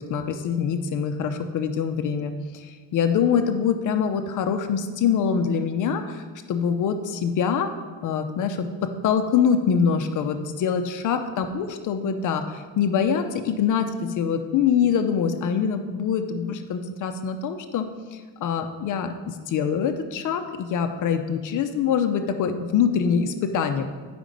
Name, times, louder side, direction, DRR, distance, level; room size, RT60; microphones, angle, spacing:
voice 1, 0.1-7.7 8.0-17.8 18.1-23.9, left 7 dB, 50° left, 7 dB, 0.7 m, -24 dB
9.8 x 5.1 x 5.1 m, 1.5 s
cardioid pair, 155°, 40 cm